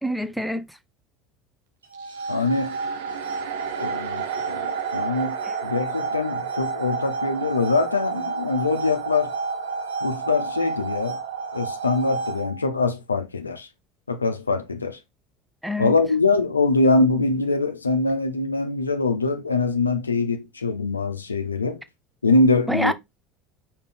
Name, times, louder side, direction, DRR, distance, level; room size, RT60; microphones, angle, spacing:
voice 1, 0.0-0.8 5.4-5.5 15.6-16.0 22.7-22.9, equal, 5° right, 0.5 m, -26 dB
sound 1, 1.8-12.8, right 3 dB, 85° right, 1.1 m, -32 dB
sound 2, 1.9-12.4, right 11 dB, 65° right, 0.6 m, -34 dB
voice 2, 2.3-2.8 3.8-5.4 5.6-9.3 10.0-11.2 11.5-13.7 14.1-15.0 15.8-21.8 22.2-22.9, left 3 dB, 85° left, 0.5 m, -23 dB
5.2 x 2.8 x 3.3 m
figure-of-eight pair, 70°, 0 cm